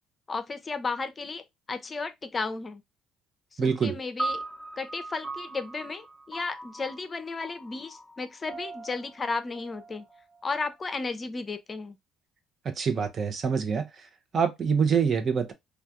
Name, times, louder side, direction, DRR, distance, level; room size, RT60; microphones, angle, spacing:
voice 1, 0.3-2.8 3.5-4.4 4.8-10.1 10.4-12.0, left 4 dB, 35° left, 0.5 m, -34 dB
voice 2, 3.6-3.9 12.7-13.9 14.3-15.5, right 6 dB, 45° right, 0.8 m, -25 dB
sound 1, 4.2-10.6, right 2 dB, 15° right, 1.0 m, -39 dB
3.3 x 2.4 x 2.5 m
hypercardioid pair, 60°, 0 cm